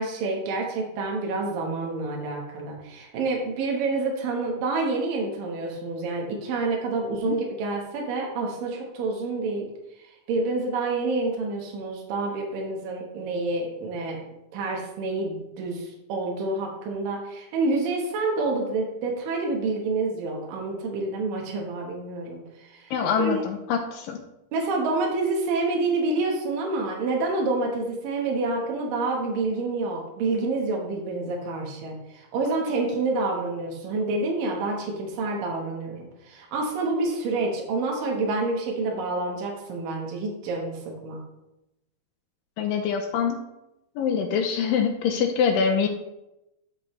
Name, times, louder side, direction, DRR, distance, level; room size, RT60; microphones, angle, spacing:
voice 1, 0.0-9.7 10.3-14.2 14.5-23.4 24.5-41.2, right 3 dB, 70° right, -1 dB, 3.0 m, -28 dB
voice 2, 22.9-24.2 42.6-43.4 44.0-45.9, left 6 dB, 80° left, 5 dB, 2.2 m, -24 dB
12.5 x 4.9 x 3.2 m, 0.90 s
omnidirectional pair, 4.2 m